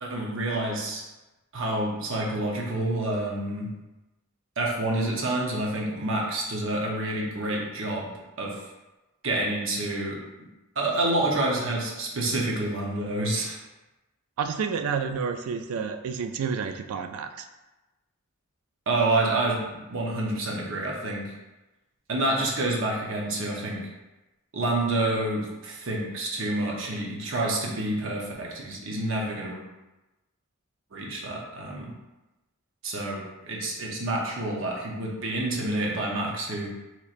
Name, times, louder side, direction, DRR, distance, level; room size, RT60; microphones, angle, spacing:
voice 1, 0.0-1.0 1.5-3.7 4.6-8.0 8.4-8.6 9.2-10.2 10.8-13.6 18.9-19.6 19.9-21.3 22.1-23.9 24.5-29.6 30.9-31.9 32.8-36.7, right 2 dB, 65° right, -2 dB, 0.7 m, -28 dB
voice 2, 14.4-17.5, right 6 dB, 85° right, 7 dB, 0.3 m, -30 dB
4.1 x 3.0 x 2.5 m, 1.0 s
head